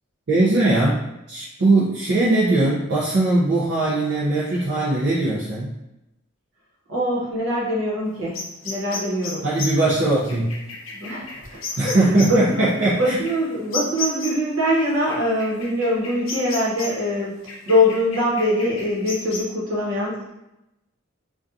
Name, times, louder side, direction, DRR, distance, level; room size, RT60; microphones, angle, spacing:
voice 1, 0.3-5.7 9.4-10.6 11.8-13.2, right 2 dB, 55° right, -7 dB, 0.5 m, -20 dB
voice 2, 6.9-9.4 10.9-11.6 11.9-17.3 17.7-20.3, left 1 dB, 75° right, -5 dB, 1.0 m, -23 dB
sound 1, 8.3-14.5 15.1-17.1 17.5-19.4, left 3 dB, 80° left, 0.5 m, -33 dB
2.6 x 2.3 x 2.4 m, 0.91 s
head